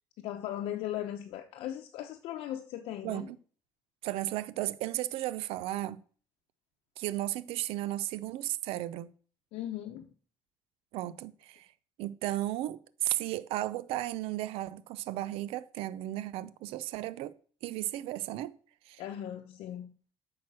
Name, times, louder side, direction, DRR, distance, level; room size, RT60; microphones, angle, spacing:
voice 1, 0.2-3.3 9.5-10.1 19.0-19.9, left 12 dB, 80° left, 0.8 m, -38 dB
voice 2, 3.0-3.4 4.0-6.0 7.0-9.1 10.9-11.7 12.0-17.4 17.6-18.6 18.9-19.0, right 15 dB, 90° right, 0.5 m, -34 dB
8.7 x 5.9 x 6.2 m
cardioid pair, 145°, 10 cm